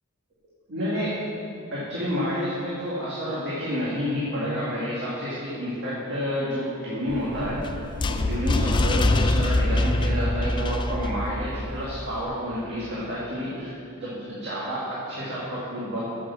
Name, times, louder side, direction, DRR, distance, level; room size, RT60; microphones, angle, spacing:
voice 1, 0.7-1.2 1.7-16.0, equal, 50° right, -8 dB, 1.8 m, -29 dB
sound 1, 7.1-12.2, left 2 dB, 20° left, 0.3 m, -25 dB
7.5 x 6.5 x 7.1 m, 2.6 s
head